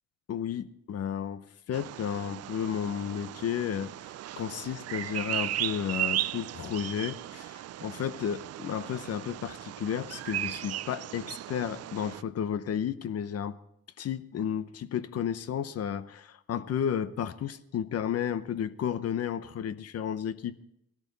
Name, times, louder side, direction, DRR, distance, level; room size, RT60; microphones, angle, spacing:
voice 1, 0.3-13.6 14.0-20.6, left 8 dB, 55° left, 14 dB, 0.8 m, -33 dB
Bird vocalization bird call bird song, 1.7-12.2, right 13 dB, 55° right, 0.4 m, -36 dB
17.0 x 13.5 x 4.0 m, 0.78 s
cardioid pair, 90°, 30 cm